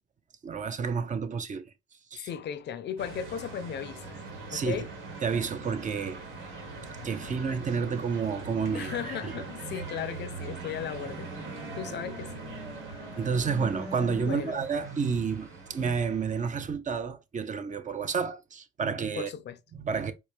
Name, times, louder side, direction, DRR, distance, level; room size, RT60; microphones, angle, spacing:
voice 1, 0.4-1.6 2.1-2.3 4.5-4.8 5.2-6.2 7.0-9.3 13.2-19.3 19.7-20.1, right 5 dB, 40° right, 0.6 m, -30 dB
voice 2, 2.2-4.1 4.5-4.9 7.2-7.3 8.7-11.3 11.7-12.5 14.2-14.6 19.2-19.6, left 9 dB, 60° left, 0.5 m, -36 dB
sound 1, 3.0-16.7, right 3 dB, 80° right, 1.6 m, -42 dB
sound 2, 10.8-16.0, equal, 15° right, 0.9 m, -45 dB
4.4 x 2.1 x 3.2 m
cardioid pair, 90°, 20 cm